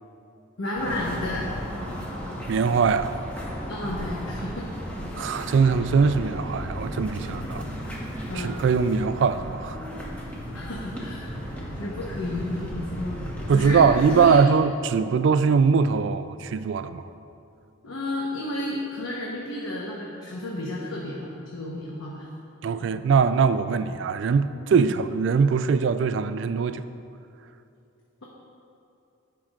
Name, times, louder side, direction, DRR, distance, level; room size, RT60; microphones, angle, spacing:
voice 1, 0.6-1.5 3.7-4.8 7.4-7.6 8.3-8.6 10.5-11.2 11.7-13.2 13.5-14.4 17.8-22.3 22.8-22.9 23.8-23.9 24.7-24.8, left 1 dB, 90° left, 1.0 m, -32 dB
sound 1, 0.8-14.3, equal, 5° left, 1.1 m, -35 dB
voice 2, 2.5-3.2 5.2-7.6 8.3-9.8 13.5-17.0 22.6-26.8, right 5 dB, 60° right, 0.3 m, -21 dB
16.5 x 5.8 x 2.4 m
head